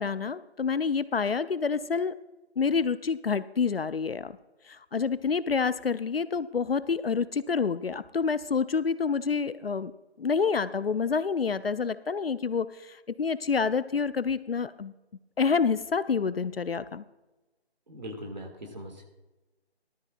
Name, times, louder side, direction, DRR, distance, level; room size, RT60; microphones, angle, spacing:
voice 1, 0.0-2.2 2.6-4.4 4.6-9.9 10.2-14.9 15.4-17.0, left 5 dB, 60° left, 15 dB, 0.5 m, -28 dB
voice 2, 17.9-19.1, equal, 40° right, 4 dB, 2.1 m, -40 dB
16.5 x 13.0 x 2.5 m, 1.1 s
figure-of-eight pair, 180°, 33 cm